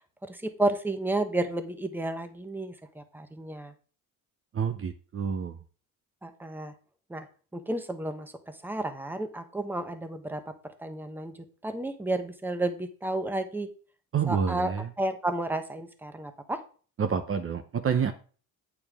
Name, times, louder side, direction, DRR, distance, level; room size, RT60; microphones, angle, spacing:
voice 1, 0.2-3.7 6.2-6.7 7.1-7.3 7.5-13.7 14.3-14.7 15.0-16.6, right 2 dB, 5° right, 9 dB, 1.0 m, -32 dB
voice 2, 4.5-5.6 14.1-14.9 17.0-18.1, right 7 dB, 35° right, 9 dB, 0.8 m, -28 dB
8.6 x 7.2 x 3.6 m, 0.39 s
cardioid pair, 125°, 37 cm